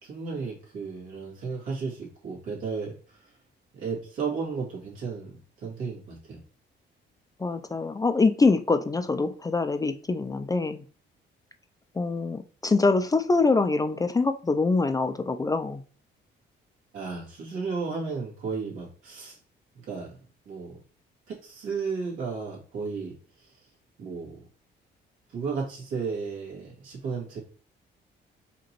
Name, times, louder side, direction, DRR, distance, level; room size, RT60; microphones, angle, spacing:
voice 1, 0.0-2.9 3.7-6.4 16.9-19.4 19.8-20.1 20.5-20.8 21.3-23.1 23.4-23.5 24.0-24.4 25.3-27.4, right 5 dB, 85° right, -4 dB, 2.1 m, -34 dB
voice 2, 7.4-10.8 11.9-15.8, left 3 dB, 20° left, 8 dB, 0.3 m, -24 dB
5.0 x 2.9 x 2.9 m, 0.40 s
cardioid pair, 90°, 20 cm